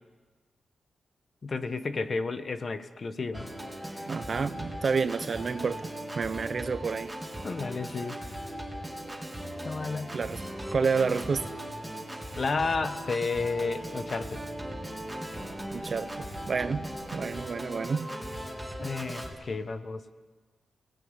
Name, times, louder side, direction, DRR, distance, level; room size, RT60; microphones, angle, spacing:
voice 1, 1.4-3.5 7.4-8.2 9.6-10.1 12.4-14.4 18.8-20.0, left 4 dB, 40° left, 10 dB, 1.4 m, -31 dB
Organ, 3.3-19.3, right 1 dB, 5° right, 3.8 m, -38 dB
voice 2, 4.1-5.9 6.1-7.1 10.1-10.4 10.7-11.5 15.7-16.1 16.5-18.1, right 5 dB, 50° right, 13 dB, 1.0 m, -29 dB
28.5 x 18.5 x 9.9 m, 1.3 s
wide cardioid pair, 120°, 0 cm